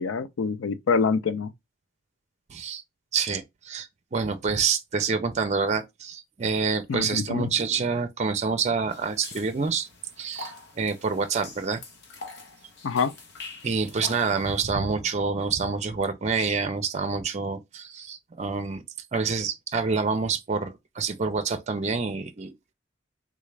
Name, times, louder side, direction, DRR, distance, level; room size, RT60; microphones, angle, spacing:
voice 1, 0.0-1.5 6.9-7.5 12.8-13.1, left 5 dB, 75° left, 0.4 m, -25 dB
voice 2, 2.5-2.8 3.1-9.9 10.2-11.8 13.6-18.8 19.1-22.6, right 5 dB, 35° right, 0.4 m, -27 dB
sound 1, 8.9-14.6, left 3 dB, 55° left, 1.0 m, -44 dB
3.7 x 2.4 x 3.2 m
head